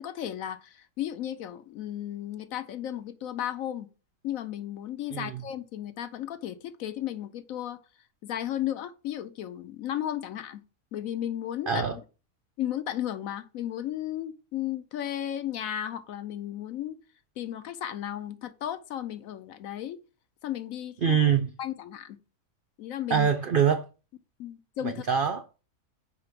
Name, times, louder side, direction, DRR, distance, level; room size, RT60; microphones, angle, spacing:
voice 1, 0.0-3.9 4.2-7.8 8.2-10.6 10.9-11.8 12.6-17.0 17.4-20.0 20.4-21.2 21.6-22.2 22.8-23.3 24.4-25.0, left 11 dB, 70° left, 1.0 m, -34 dB
voice 2, 5.1-5.4 11.7-12.0 21.0-21.5 23.1-23.9 24.8-25.4, right 7 dB, 80° right, 0.4 m, -24 dB
5.6 x 4.9 x 5.1 m
omnidirectional pair, 1.6 m